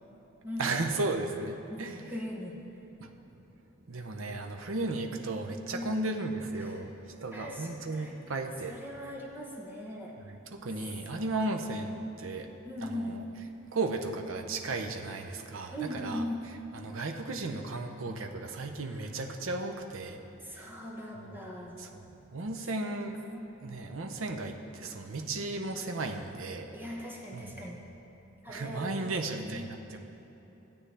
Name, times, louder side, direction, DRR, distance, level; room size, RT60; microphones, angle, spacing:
voice 1, 0.6-2.1 3.0-3.1 3.9-8.8 10.3-12.5 12.8-13.2 13.7-16.2 16.7-20.9 21.2-21.3 21.8-23.2 23.6-26.7 27.3-27.5 28.5-30.0, right 2 dB, 80° right, 4 dB, 0.7 m, -35 dB
voice 2, 1.7-2.6 5.7-5.9 6.6-6.8 7.3-8.1 8.6-10.1 12.6-13.1 15.7-16.4 18.9-19.1 20.4-21.8 22.8-23.0 23.2-23.4 26.7-27.8 28.4-29.1 29.4-29.7, equal, 10° right, -3 dB, 1.1 m, -40 dB
15.0 x 8.7 x 3.4 m, 3.0 s
head